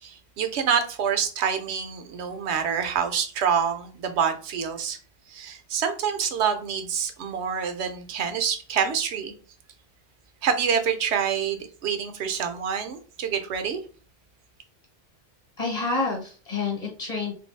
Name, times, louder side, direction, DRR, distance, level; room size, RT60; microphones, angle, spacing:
voice 1, 0.0-5.0 5.3-9.3 10.4-13.8, right 7 dB, 85° right, 0.9 m, -27 dB
voice 2, 15.6-17.3, left 3 dB, 40° left, 1.1 m, -28 dB
3.0 x 2.6 x 3.1 m
omnidirectional pair, 1.1 m